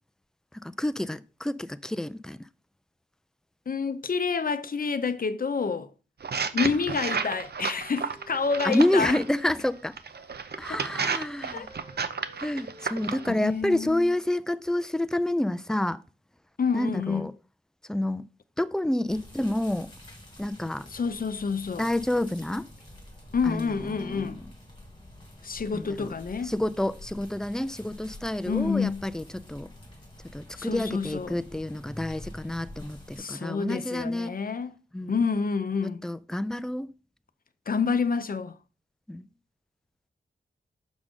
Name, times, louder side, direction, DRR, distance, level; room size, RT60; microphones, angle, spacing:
voice 1, 0.5-2.4 8.6-9.9 10.6-11.7 12.4-16.0 16.7-17.3 17.9-18.2 18.6-19.9 20.4-20.9 21.8-22.7 23.5-24.5 25.7-26.1 26.4-29.7 30.3-34.4 34.9-35.1 36.0-36.9 39.1-39.3, left 1 dB, 5° left, 0.3 m, -29 dB
voice 2, 3.7-5.9 6.5-9.2 10.7-10.8 11.5-11.7 13.3-14.1 16.6-17.3 20.9-21.9 23.3-24.4 25.4-26.5 28.5-29.0 30.6-31.4 33.2-34.8 35.1-36.0 37.7-38.6, left 5 dB, 50° left, 0.6 m, -28 dB
sound 1, 6.2-9.3 10.0-13.3, right 5 dB, 60° right, 0.6 m, -32 dB
Wind instrument woodwind instrument, 7.3-10.3 10.8-14.3, right 1 dB, 75° right, 1.7 m, -53 dB
sound 2, 19.1-33.2, left 1 dB, 25° left, 2.3 m, -47 dB
6.3 x 6.1 x 3.7 m
wide cardioid pair, 120°, 19 cm